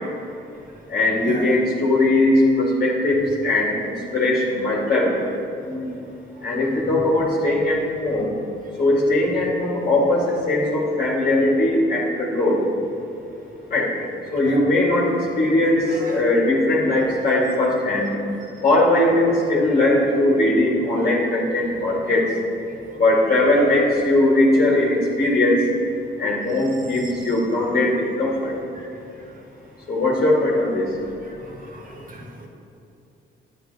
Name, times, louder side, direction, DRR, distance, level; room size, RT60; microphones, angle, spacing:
voice 1, 0.9-5.2 6.4-8.3 8.8-12.6 13.7-13.9 14.3-18.1 18.6-22.3 23.0-25.6 26.2-28.5 29.9-30.9, left 1 dB, 50° left, -4 dB, 2.2 m, -19 dB
voice 2, 5.6-6.0 6.5-7.0 14.4-14.6 15.9-16.2 21.4-21.5 27.0-27.1 27.6-27.7 28.8-28.9 30.2-30.3 31.3-31.4 31.7-32.5, equal, 45° right, 0 dB, 1.9 m, -34 dB
10.5 x 9.3 x 4.2 m, 2.8 s
cardioid pair, 90°, 20 cm